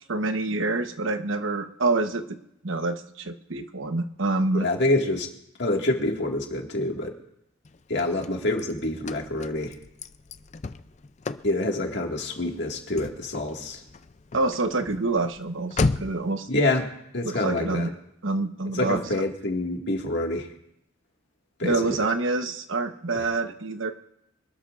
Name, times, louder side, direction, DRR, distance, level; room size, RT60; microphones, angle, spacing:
voice 1, 0.1-2.2 2.6-4.7 14.3-16.5 17.2-17.9 18.2-19.0 21.6-23.9, right 3 dB, 70° right, 7 dB, 1.1 m, -26 dB
voice 2, 4.5-5.3 5.6-7.2 7.9-9.7 11.4-13.8 16.5-16.9 17.1-17.9 18.7-20.5 21.6-21.8 23.1-23.3, left 2 dB, 55° left, 1 dB, 2.0 m, -26 dB
Car / Slam, 7.6-16.3, left 3 dB, 35° left, 0.4 m, -35 dB
25.5 x 12.5 x 2.6 m, 0.79 s
head